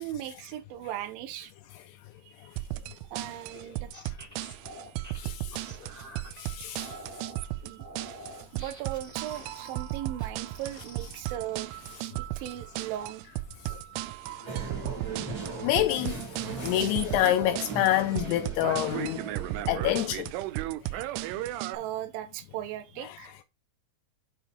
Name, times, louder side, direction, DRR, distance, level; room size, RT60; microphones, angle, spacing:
voice 1, 0.0-1.5 2.2-2.3 3.0-3.9 7.6-7.8 8.5-11.7 12.2-13.2 21.7-23.4, right 12 dB, 75° right, 2.4 m, -37 dB
sound 1, 2.6-21.8, right 15 dB, 90° right, 2.7 m, -36 dB
sound 2, 3.4-6.3 6.7-7.4 7.8-12.0 12.4-13.0 13.4-13.8, equal, 15° right, 0.6 m, -48 dB
voice 2, 5.1-5.6 6.3-7.0 13.7-13.8 14.4-14.6 15.6-19.2 19.7-20.3 20.9-21.0 23.0-23.2, left 13 dB, 85° left, 2.6 m, -28 dB
sound 3, 14.5-19.6, right 4 dB, 50° right, 1.1 m, -38 dB
9.2 x 3.5 x 4.4 m
omnidirectional pair, 4.8 m